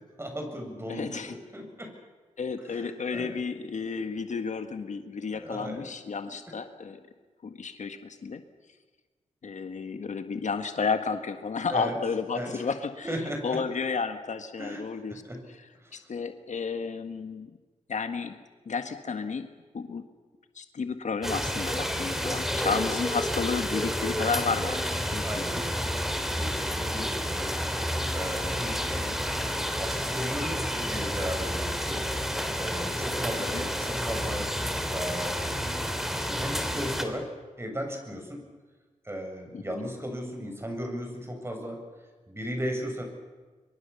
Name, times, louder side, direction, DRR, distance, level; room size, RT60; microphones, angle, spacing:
voice 1, 0.2-1.9 2.7-3.3 5.3-5.9 11.7-11.9 12.3-12.6 13.0-13.6 14.6-15.4 15.8-16.0 22.6-22.8 25.2-25.7 26.3-27.6 27.8-29.0 29.8-32.0 32.6-34.4 34.9-35.9 36.1-37.2 37.6-38.4 39.0-41.8 42.3-43.0, equal, 20° right, 3 dB, 7.5 m, -36 dB
voice 2, 0.9-1.4 2.4-7.0 7.4-8.4 9.4-15.2 15.9-17.6 17.9-18.4 18.6-19.5 19.7-20.0 20.5-25.4 29.0-29.2 33.5-33.6 39.5-39.8, left 5 dB, 70° left, 8 dB, 1.7 m, -32 dB
sound 1, 21.2-37.0, equal, 5° right, 3.3 m, -30 dB
25.0 x 24.0 x 7.1 m, 1.3 s
cardioid pair, 60°, 13 cm